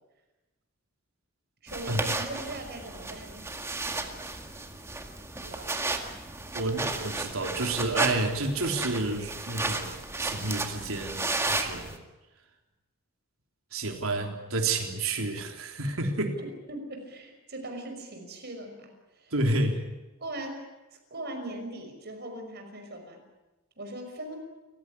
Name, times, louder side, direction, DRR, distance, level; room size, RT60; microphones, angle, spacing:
voice 1, 1.6-3.5 5.4-5.8 16.4-19.3 20.2-20.6 20.9-23.2 23.8-24.4, right 1 dB, 50° right, 4 dB, 5.8 m, -40 dB
sound 1, 1.7-12.0, right 2 dB, 15° right, 2.0 m, -33 dB
voice 2, 6.5-11.9 13.7-16.4 19.3-19.8, right 2 dB, 80° right, 3 dB, 3.6 m, -30 dB
28.5 x 16.0 x 9.9 m, 1.1 s
head